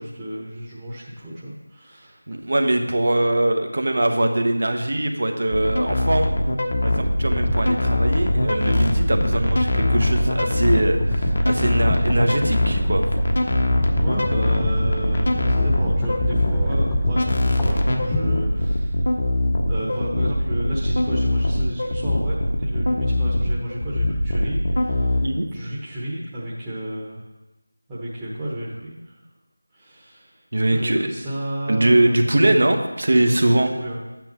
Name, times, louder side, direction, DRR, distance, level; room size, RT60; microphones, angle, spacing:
voice 1, 0.0-2.2 13.6-19.1 19.7-27.2 27.9-29.2 29.7-30.4 30.7-32.6 33.8-34.0, right 1 dB, 10° right, -9 dB, 1.2 m, -32 dB
voice 2, 2.3-6.3 6.8-13.1 25.2-25.5 30.5-31.1 31.7-33.7, right 1 dB, 55° right, 5 dB, 1.1 m, -21 dB
sound 1, 5.5-25.2, left 1 dB, 50° left, 1.3 m, -22 dB
sound 2, 7.2-18.7, left 1 dB, 10° left, 0.6 m, -29 dB
11.0 x 9.0 x 3.1 m, 1.0 s
figure-of-eight pair, 170°, 0 cm